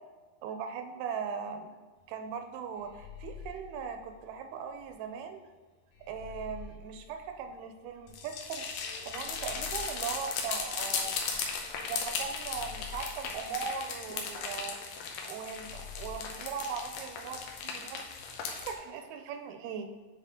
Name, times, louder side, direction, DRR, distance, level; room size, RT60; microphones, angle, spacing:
voice 1, 0.4-1.7 2.1-5.5 6.1-8.7 9.0-11.2 11.9-14.8 15.3-18.0 18.6-19.9, right 6 dB, 85° right, 6 dB, 2.6 m, -39 dB
sound 1, 2.8-4.9 5.9-8.1 9.1-11.4 12.3-14.4 15.4-17.6, left 5 dB, 60° left, 2.1 m, -49 dB
sound 2, 8.1-18.7, left 5 dB, 75° left, 2.1 m, -37 dB
9.1 x 4.0 x 3.7 m, 1.3 s
omnidirectional pair, 4.4 m